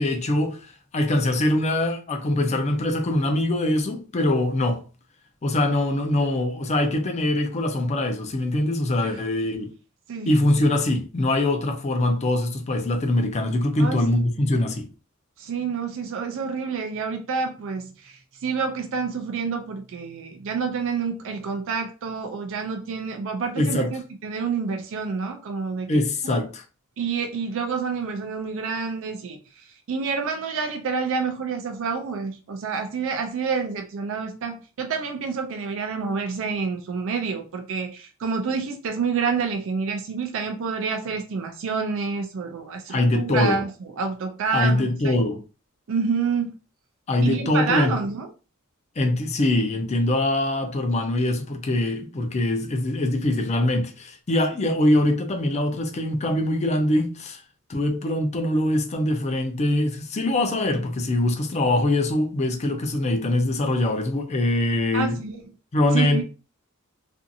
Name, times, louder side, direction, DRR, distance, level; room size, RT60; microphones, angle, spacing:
voice 1, 0.0-4.8 5.4-9.7 10.3-14.9 23.6-23.9 25.9-26.6 42.9-43.6 44.5-45.4 47.1-48.0 49.0-57.4 57.7-65.2 65.7-66.2, left 1 dB, 30° left, 0.5 m, -23 dB
voice 2, 13.8-14.5 15.4-26.4 27.0-45.2 45.9-46.6 47.2-48.3 64.9-65.4 65.9-66.2, right 5 dB, 60° right, 0.4 m, -28 dB
2.5 x 2.4 x 2.6 m
head